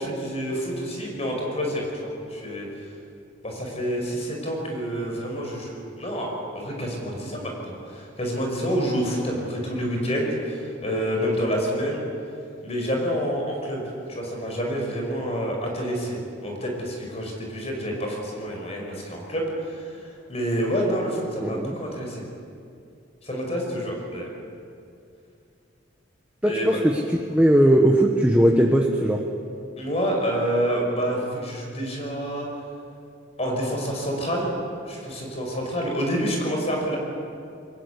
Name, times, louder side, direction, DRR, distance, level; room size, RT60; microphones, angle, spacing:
voice 1, 0.0-2.7 3.4-12.0 12.6-13.8 14.1-20.0 20.3-22.2 23.2-24.3 26.5-26.8 29.8-32.5 33.4-34.5 34.9-37.0, equal, 30° left, 0 dB, 5.4 m, -28 dB
voice 2, 21.4-21.7 26.4-26.9 27.3-29.2, right 1 dB, 5° right, 0 dB, 1.3 m, -18 dB
23.5 x 20.0 x 8.4 m, 2.5 s
head